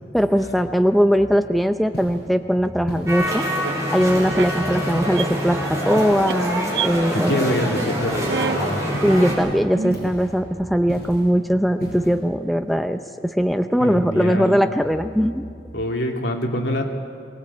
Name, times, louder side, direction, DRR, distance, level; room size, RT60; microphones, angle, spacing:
voice 1, 0.1-3.5 3.9-7.5 9.0-15.5, equal, ahead, 8 dB, 0.6 m, -20 dB
sound 1, 1.9-2.3 2.9-3.4 4.0-4.4 5.0-5.4 6.0-6.5 8.0-8.4 8.9-9.4 9.9-10.4 10.9-11.3 11.8-12.2, equal, 60° left, 7.9 m, -35 dB
sound 2, 3.1-9.3, equal, 20° right, 5.4 m, -25 dB
sound 3, 3.4-3.7 4.3-4.5 5.0-5.2 5.7-5.9 6.2-6.3 6.7-6.9 7.2-7.4 7.7-8.0 8.3-8.6 9.3-9.4 9.7-10.1, right 6 dB, 75° right, 0.5 m, -28 dB
voice 2, 7.1-8.8 13.8-14.6 15.7-16.8, left 1 dB, 85° left, 1 dB, 2.6 m, -25 dB
23.0 x 18.0 x 8.4 m, 2.3 s
head